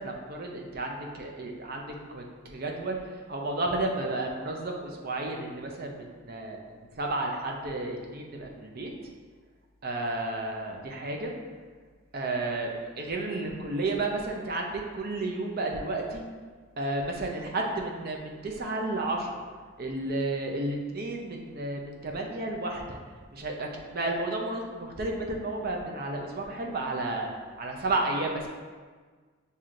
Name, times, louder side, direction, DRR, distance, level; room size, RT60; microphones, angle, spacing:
voice 1, 0.0-8.9 9.8-11.3 12.1-16.2 16.8-19.4 19.8-23.0 23.3-27.3 27.6-28.5, right 2 dB, 50° right, 1 dB, 0.6 m, -32 dB
7.3 x 2.8 x 2.5 m, 1.5 s
head